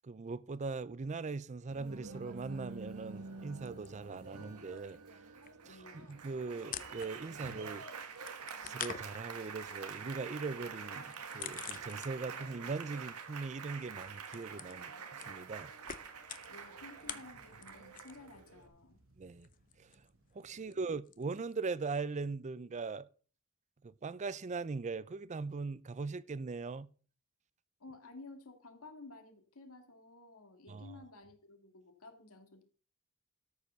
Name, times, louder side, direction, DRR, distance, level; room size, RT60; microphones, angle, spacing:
voice 1, 0.0-5.0 5.7-7.8 8.6-15.7 19.2-19.5 19.8-19.9 20.3-23.1 23.8-26.9 30.7-30.9, right 4 dB, 30° right, 0.4 m, -40 dB
Applause, 1.7-18.7, right 5 dB, 90° right, 1.4 m, -47 dB
sound 1, 3.6-4.5 4.8-7.5 7.8-12.5 12.7-18.3 18.6-21.5, left 9 dB, 40° left, 0.7 m, -48 dB
voice 2, 5.6-6.2 16.5-19.0 20.5-20.9 27.8-32.6, left 3 dB, 70° left, 2.0 m, -54 dB
sound 2, 15.5-20.9, right 2 dB, 65° right, 1.3 m, -68 dB
13.0 x 4.9 x 6.7 m
head